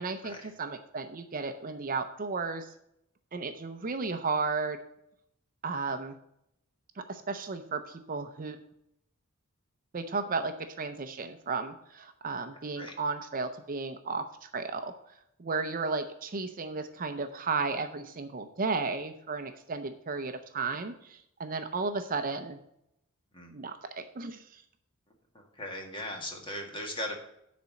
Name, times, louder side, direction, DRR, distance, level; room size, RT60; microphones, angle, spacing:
voice 1, 0.0-2.7 3.3-4.8 5.6-6.1 7.1-8.6 9.9-14.9 15.4-22.6 23.5-24.6, right 4 dB, 40° right, 8 dB, 0.6 m, -34 dB
voice 2, 25.3-27.2, left 1 dB, 25° left, 2 dB, 1.8 m, -38 dB
10.0 x 4.3 x 6.9 m, 0.77 s
head